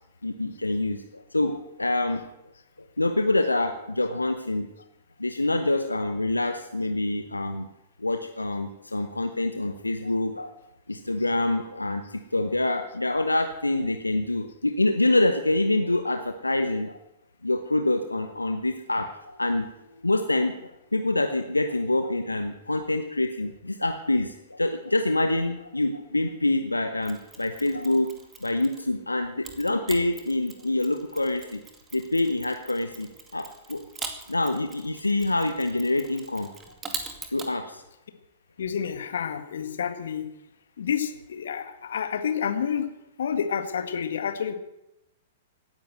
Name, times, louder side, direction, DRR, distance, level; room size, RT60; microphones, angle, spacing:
voice 1, 0.2-2.2 3.0-4.7 5.2-7.7 8.0-10.5 10.9-17.0 17.4-19.7 20.0-28.1 28.4-31.6 31.9-33.8 34.3-36.5 37.3-37.8, left 2 dB, 85° left, 7 dB, 1.0 m, -26 dB
Mechanisms, 27.0-28.9 29.4-37.5, right 5 dB, 20° right, 2.3 m, -42 dB
voice 2, 38.6-40.2 40.8-42.9 43.2-44.5, left 7 dB, 65° left, 9 dB, 1.8 m, -29 dB
17.0 x 10.5 x 7.9 m, 0.91 s
figure-of-eight pair, 105°, 0 cm